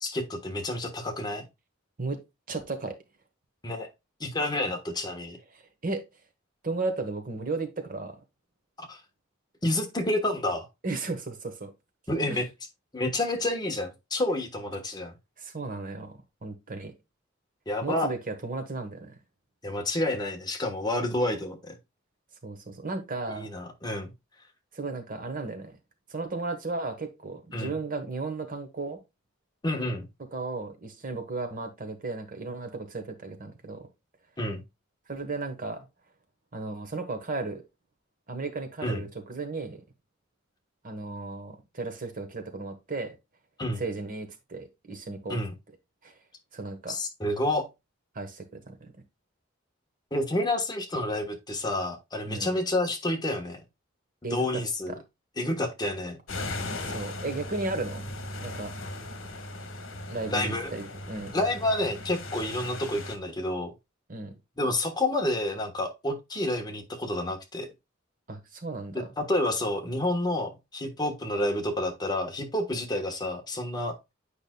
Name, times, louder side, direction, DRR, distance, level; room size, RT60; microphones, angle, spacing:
voice 1, 0.0-1.5 3.6-3.9 4.2-5.4 8.8-9.0 9.6-10.7 12.1-12.4 12.9-15.1 17.7-18.1 19.6-21.7 23.3-24.1 27.5-27.7 29.6-30.0 34.4-34.6 38.8-39.0 43.6-43.8 45.3-45.5 46.9-47.7 50.1-53.6 54.3-55.0 55.4-56.2 60.3-60.7 61.3-63.7 64.6-67.7 68.9-74.0, left 1 dB, 20° left, 1.2 m, -29 dB
voice 2, 2.5-2.9 5.5-6.0 6.6-8.1 10.8-11.7 12.3-12.4 15.4-16.1 16.4-16.9 17.8-19.2 22.4-23.5 24.7-25.8 26.1-29.0 30.3-33.9 35.1-35.9 36.5-37.6 38.3-39.8 40.8-43.2 43.8-45.4 46.0-46.1 46.5-47.0 48.1-48.9 52.3-52.6 54.2-55.0 56.9-58.7 60.1-61.3 64.1-64.3 68.3-69.1, right 3 dB, 45° right, 1.2 m, -35 dB
sound 1, 56.3-63.2, left 2 dB, 75° left, 1.3 m, -38 dB
8.7 x 5.0 x 2.3 m
head